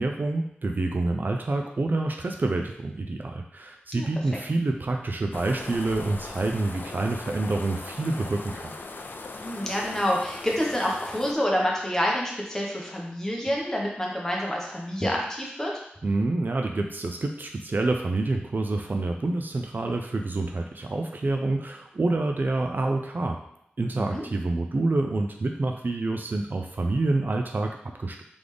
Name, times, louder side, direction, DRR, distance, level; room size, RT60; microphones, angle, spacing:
voice 1, 0.0-8.7 16.0-23.4 23.8-28.2, right 2 dB, 55° right, 3 dB, 0.4 m, -27 dB
sound 1, 5.3-11.3, left 3 dB, 65° left, 0.4 m, -39 dB
voice 2, 9.4-15.7 23.9-24.2, equal, 15° left, -2 dB, 1.1 m, -27 dB
3.8 x 3.4 x 3.3 m, 0.78 s
wide cardioid pair, 60°, 4 cm